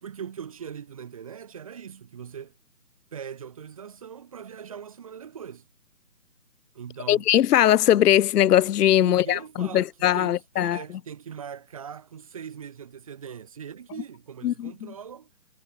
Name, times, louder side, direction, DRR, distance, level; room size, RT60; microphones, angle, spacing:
voice 1, 0.0-2.5 3.1-5.6 6.7-7.3 9.0-15.3, right 8 dB, 20° right, 2.5 m, -41 dB
voice 2, 7.1-10.8 14.4-14.7, left 11 dB, 75° left, 0.5 m, -20 dB
hypercardioid pair, 175°, 48 cm